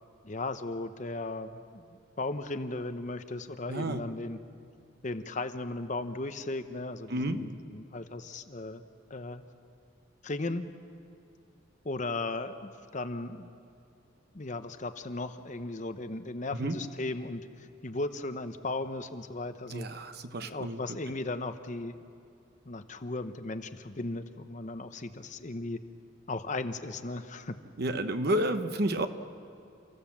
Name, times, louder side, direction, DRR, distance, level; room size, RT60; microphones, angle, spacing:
voice 1, 0.2-4.4 5.0-8.8 9.1-9.4 10.2-10.7 11.8-13.5 14.3-19.9 20.4-22.0 22.7-25.8 26.3-27.6, left 2 dB, 40° left, 9 dB, 0.8 m, -36 dB
voice 2, 3.7-4.0 7.1-7.4 16.5-16.8 19.7-20.8 27.8-29.1, right 1 dB, 50° right, 8 dB, 1.0 m, -30 dB
29.5 x 15.0 x 7.3 m, 2.6 s
head